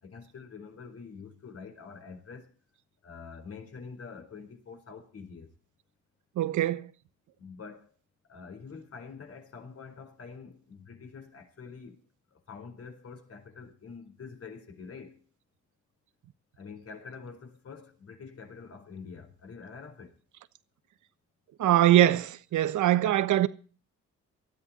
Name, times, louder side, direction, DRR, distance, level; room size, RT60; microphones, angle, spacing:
voice 1, 0.0-2.5 3.0-5.5 7.4-7.9 8.3-12.0 12.3-15.2 16.6-20.1 23.0-23.3, left 5 dB, 50° left, 4.6 m, -46 dB
voice 2, 6.4-6.9 21.6-23.5, right 13 dB, 75° right, 1.3 m, -23 dB
19.0 x 13.0 x 4.2 m
cardioid pair, 90°, 30 cm